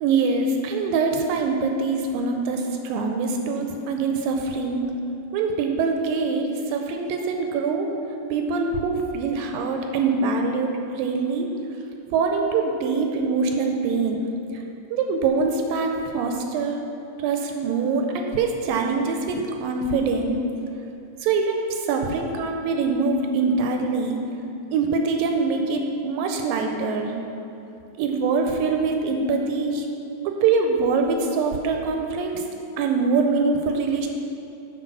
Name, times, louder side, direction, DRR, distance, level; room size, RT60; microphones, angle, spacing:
voice 1, 0.0-4.9 5.3-7.9 8.3-11.5 12.1-14.3 14.5-14.6 14.9-16.8 17.2-20.4 21.2-24.2 24.7-27.2 28.0-29.9 30.3-32.5 32.8-34.1, right 4 dB, 80° right, 3 dB, 2.2 m, -24 dB
9.6 x 4.3 x 6.1 m, 2.8 s
omnidirectional pair, 4.3 m